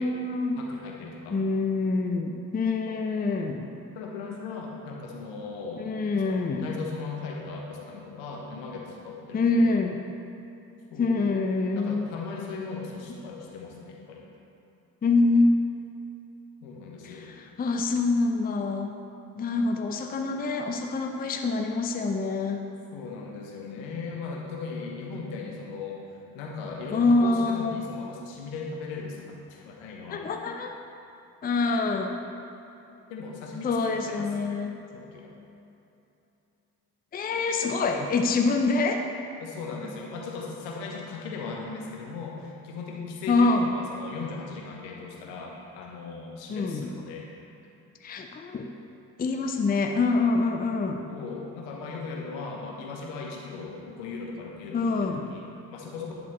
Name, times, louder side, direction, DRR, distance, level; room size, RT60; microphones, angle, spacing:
voice 1, 0.0-0.6 1.3-3.7 5.8-6.8 9.3-10.0 11.0-12.1 15.0-15.6 17.0-18.9 19.3-22.6 26.9-27.9 30.1-30.7 31.4-32.2 33.6-34.7 37.1-39.1 43.3-43.8 46.5-46.9 48.0-48.7 49.2-51.1 54.7-55.3, left 3 dB, 20° left, 4 dB, 0.6 m, -25 dB
voice 2, 0.6-1.4 3.9-9.7 10.9-11.2 11.7-14.2 16.6-17.3 22.9-26.0 26.3-30.2 31.6-31.8 33.1-34.3 34.9-35.3 39.4-47.3 51.1-56.1, left 4 dB, 65° left, 0 dB, 1.2 m, -38 dB
10.5 x 4.5 x 4.3 m, 2.8 s
figure-of-eight pair, 50°, 46 cm